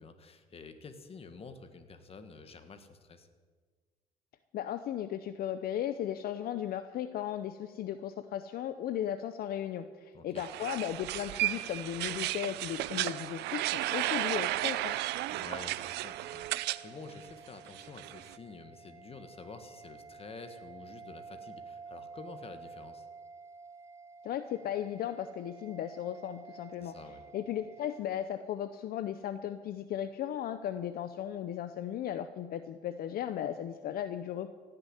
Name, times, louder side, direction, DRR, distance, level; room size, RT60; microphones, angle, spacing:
voice 1, 0.0-3.3 10.1-10.4 15.3-23.1 26.8-27.2, left 4 dB, 35° left, 8 dB, 1.6 m, -49 dB
voice 2, 4.5-15.0 24.2-27.0 27.3-34.5, left 10 dB, 65° left, 10 dB, 0.7 m, -36 dB
sound 1, 10.4-16.8 17.1-18.4, right 16 dB, 80° right, 0.5 m, -34 dB
sound 2, 11.1-28.0, right 4 dB, 15° right, 1.2 m, -52 dB
16.5 x 6.9 x 9.9 m, 1.5 s
cardioid pair, 110°, 17 cm